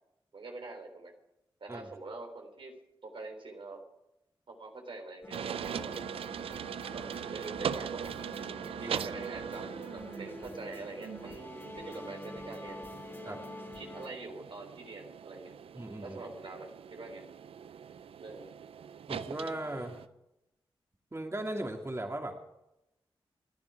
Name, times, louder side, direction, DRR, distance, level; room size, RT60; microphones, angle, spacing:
voice 1, 0.3-1.1 1.6-2.7 3.0-3.8 4.5-6.1 6.9-8.1 8.4-12.8 13.2-13.4 13.7-15.5 16.0-17.2 18.2-18.5, right 2 dB, 65° right, 3 dB, 3.5 m, -44 dB
sound 1, 5.2-14.1, left 1 dB, 25° left, 3.1 m, -47 dB
sound 2, 5.3-20.1, right 8 dB, 85° right, 0.5 m, -41 dB
voice 2, 15.7-16.2 19.1-20.1 21.1-22.5, right 1 dB, 30° right, 2 dB, 2.9 m, -38 dB
28.0 x 10.5 x 4.9 m, 0.88 s
cardioid pair, 45°, 10 cm